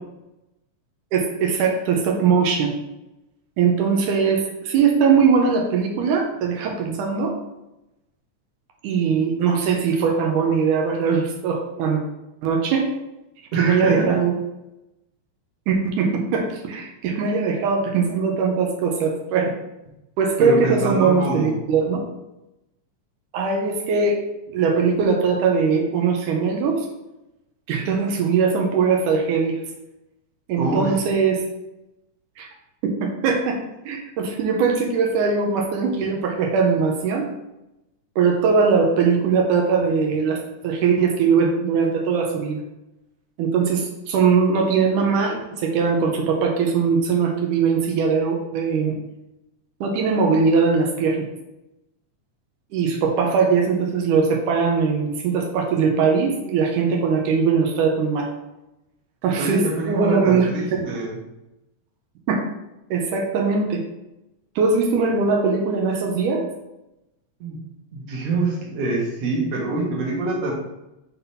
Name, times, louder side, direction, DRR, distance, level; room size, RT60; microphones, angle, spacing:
voice 1, 1.1-2.7 3.6-7.3 8.8-12.0 12.4-12.9 13.6-14.4 15.7-19.5 20.2-22.1 23.3-24.2 24.5-26.9 27.7-29.6 30.5-31.4 32.4-32.5 32.8-33.6 33.9-37.3 38.2-42.6 43.4-49.0 49.8-51.3 52.7-58.3 59.2-60.5 60.8-60.9 62.3-62.4 62.9-63.8 64.6-66.4, right 5 dB, 85° right, 1 dB, 2.4 m, -20 dB
voice 2, 13.5-14.2 20.4-21.5 30.6-31.0 59.4-61.2 67.4-67.6 67.9-70.5, right 3 dB, 55° right, -2 dB, 2.3 m, -25 dB
5.9 x 4.0 x 5.5 m, 0.92 s
omnidirectional pair, 3.5 m